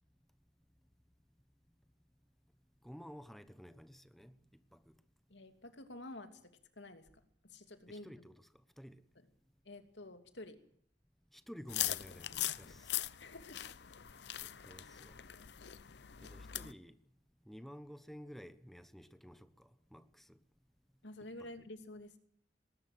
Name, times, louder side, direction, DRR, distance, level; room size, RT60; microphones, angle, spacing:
voice 1, 2.8-4.4 4.7-4.9 7.9-8.5 8.8-9.0 11.3-12.9 14.4-15.2 16.2-17.0 17.5-20.4 21.2-21.5, equal, ahead, 1.1 m, -53 dB
voice 2, 5.3-6.3 6.8-7.1 7.4-8.3 9.6-10.6 13.2-13.6 21.0-22.1, left 1 dB, 85° left, 2.8 m, -50 dB
sound 1, 11.7-16.7, left 13 dB, 70° left, 0.8 m, -41 dB
19.5 x 19.5 x 7.9 m
head